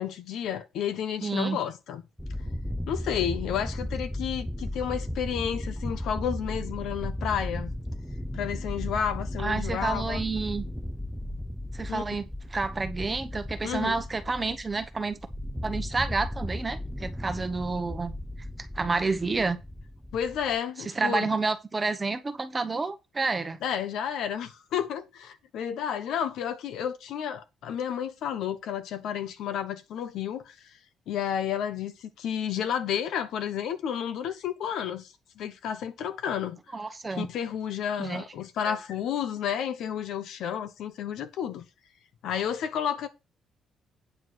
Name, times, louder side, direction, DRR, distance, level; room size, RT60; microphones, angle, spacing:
voice 1, 0.0-2.0 2.9-7.7 8.3-10.2 11.9-12.0 13.6-14.0 20.1-21.3 23.6-30.5 31.1-36.6 37.1-41.6 42.2-43.1, left 9 dB, 75° left, 1.2 m, -31 dB
voice 2, 1.2-1.6 9.4-10.6 11.7-15.2 15.6-18.1 18.8-19.6 20.8-23.6 36.7-37.3 38.0-38.2 38.6-38.8, right 3 dB, 20° right, 1.0 m, -29 dB
sound 1, 2.2-20.6, left 1 dB, ahead, 0.7 m, -35 dB
9.1 x 4.7 x 6.3 m
cardioid pair, 165°, 0 cm